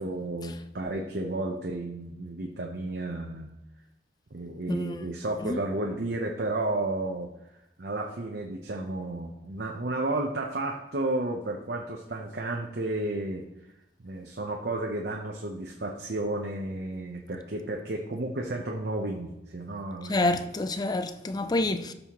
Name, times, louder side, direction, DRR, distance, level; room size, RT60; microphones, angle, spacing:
voice 1, 0.0-3.5 4.3-7.3 7.8-13.4 14.0-20.4 21.6-21.9, right 2 dB, 65° right, 0.8 m, -32 dB
voice 2, 20.1-21.9, left 2 dB, 20° left, 0.4 m, -28 dB
13.0 x 5.5 x 3.0 m
head